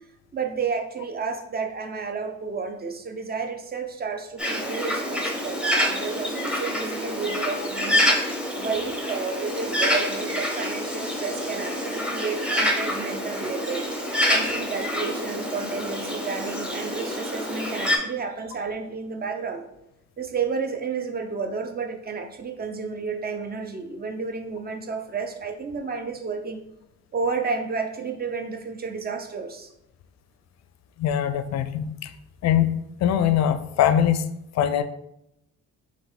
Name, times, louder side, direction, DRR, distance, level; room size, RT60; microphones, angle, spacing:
voice 1, 0.3-8.1 8.6-13.9 14.3-19.6 20.2-26.6 27.1-29.7, right 5 dB, 30° right, 5 dB, 0.6 m, -31 dB
Bird, 4.4-18.0, equal, 5° right, 0.8 m, -27 dB
voice 2, 31.0-32.1 32.4-32.7 33.0-34.2 34.5-34.8, left 10 dB, 60° left, 11 dB, 0.5 m, -22 dB
3.6 x 3.1 x 3.9 m, 0.81 s
cardioid pair, 90°, 30 cm